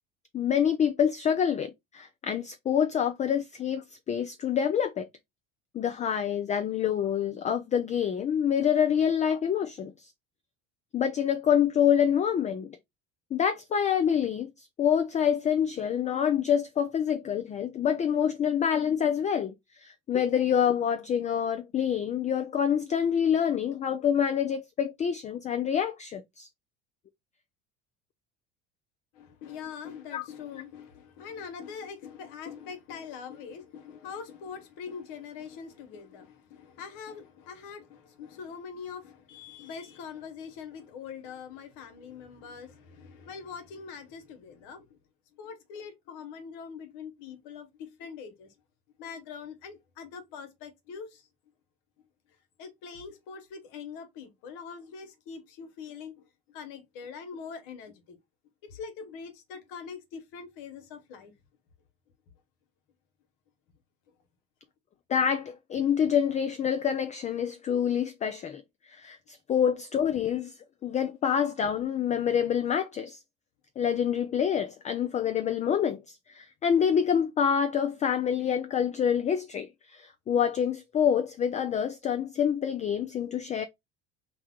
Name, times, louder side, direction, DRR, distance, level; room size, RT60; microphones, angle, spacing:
voice 1, 0.3-5.1 5.7-10.1 10.9-12.8 13.3-26.5 30.1-30.2 65.1-68.6 68.9-70.5 70.8-73.2 73.8-76.0 76.3-83.6, left 8 dB, 25° left, 0.4 m, -27 dB
voice 2, 29.1-45.0 45.3-48.5 49.0-51.2 52.6-58.2 58.6-61.3, left 6 dB, 75° left, 1.1 m, -43 dB
3.1 x 2.2 x 3.5 m
supercardioid pair, 100°, 30 cm